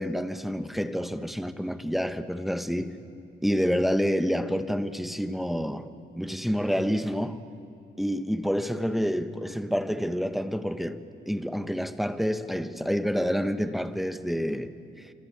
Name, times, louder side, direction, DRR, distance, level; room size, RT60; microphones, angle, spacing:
voice 1, 0.0-3.0 3.4-5.9 6.2-7.4 8.0-15.1, equal, ahead, 1.3 m, -28 dB
27.5 x 25.0 x 8.5 m
cardioid pair, 90°, 20 cm